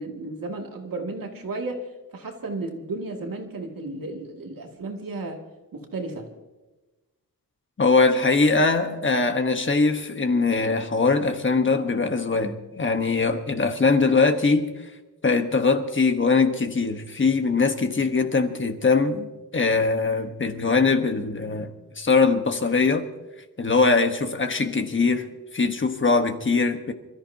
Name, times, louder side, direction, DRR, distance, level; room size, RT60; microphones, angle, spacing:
voice 1, 0.0-5.4 5.7-6.3, right 2 dB, 70° right, 2.4 m, -33 dB
voice 2, 7.8-14.9 15.2-19.3 19.5-21.7 22.0-23.0 23.6-25.3 25.5-26.9, left 4 dB, 35° left, 1.2 m, -22 dB
27.5 x 14.0 x 2.8 m
wide cardioid pair, 150°, 35 cm